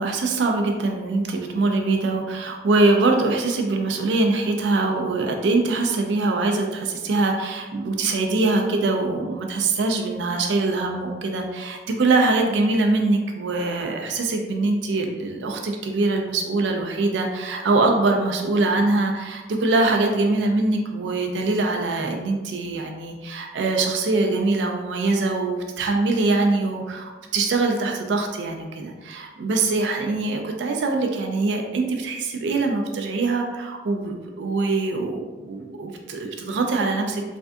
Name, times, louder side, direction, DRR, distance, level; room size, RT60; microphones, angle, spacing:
voice 1, 0.0-37.2, right 3 dB, 75° right, 3 dB, 0.4 m, -23 dB
3.3 x 2.3 x 2.5 m, 1.2 s
head